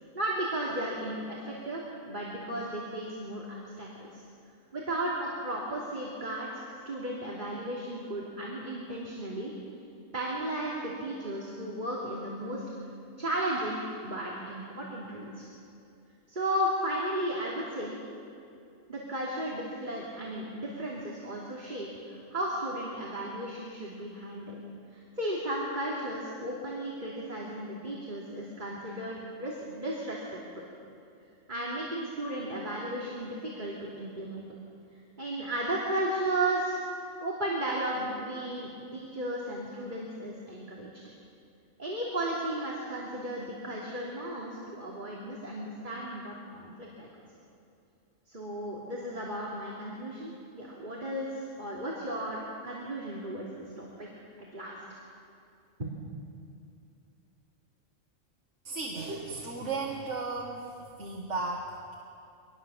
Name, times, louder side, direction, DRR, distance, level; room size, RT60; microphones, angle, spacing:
voice 1, 0.1-4.2 4.7-9.5 10.1-12.6 13.2-15.5 16.3-18.0 18.9-24.6 24.9-30.7 31.5-34.4 35.2-36.8 37.2-40.9 41.8-47.1 48.3-54.1 54.5-54.8 55.8-56.0, right 1 dB, 35° right, -4 dB, 3.2 m, -34 dB
voice 2, 58.7-60.6 61.0-62.0, right 3 dB, 65° right, 0 dB, 2.0 m, -35 dB
25.0 x 20.0 x 7.1 m, 2.6 s
omnidirectional pair, 1.3 m